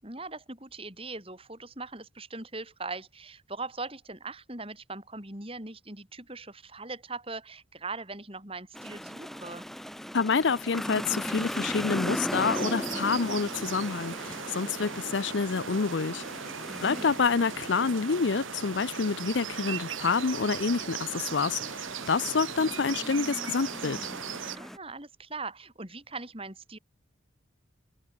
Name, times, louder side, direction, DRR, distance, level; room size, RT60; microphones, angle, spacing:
voice 1, 0.0-9.6 16.7-17.1 24.5-26.8, right 3 dB, 30° right, 5.3 m, -40 dB
sound 1, 8.7-24.8, equal, ahead, 1.2 m, -39 dB
voice 2, 10.1-16.2 16.8-24.1, left 5 dB, 65° left, 0.6 m, -28 dB
sound 2, 12.5-24.6, right 7 dB, 85° right, 1.5 m, -38 dB
head